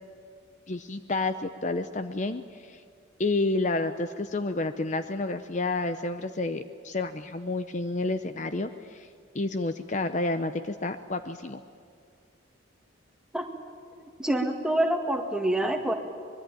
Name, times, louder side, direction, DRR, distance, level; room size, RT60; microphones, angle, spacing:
voice 1, 0.7-2.8 3.2-9.1 9.3-11.6, left 2 dB, 35° left, 10 dB, 0.7 m, -30 dB
voice 2, 14.2-15.9, right 1 dB, 5° right, 3 dB, 1.9 m, -26 dB
24.5 x 22.0 x 9.1 m, 2.2 s
head